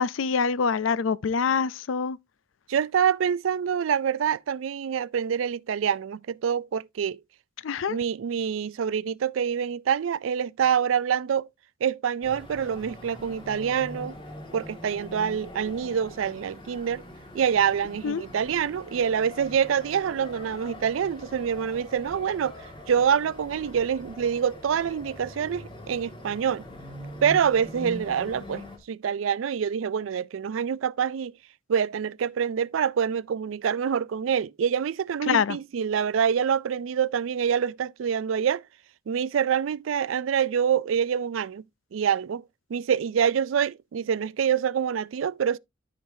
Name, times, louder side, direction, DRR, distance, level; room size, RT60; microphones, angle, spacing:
voice 1, 0.0-2.2 7.6-8.0 18.0-18.2 35.3-35.6, left 5 dB, 80° left, 0.5 m, -25 dB
voice 2, 2.7-7.2 7.9-11.5 11.8-14.1 14.5-17.0 17.3-22.6 22.9-26.6 27.2-31.3 31.7-38.6 39.1-41.6 41.9-42.4 42.7-45.6, right 7 dB, 85° right, 0.4 m, -26 dB
sound 1, 12.2-28.8, left 1 dB, 25° left, 1.9 m, -42 dB
12.5 x 5.1 x 2.7 m
head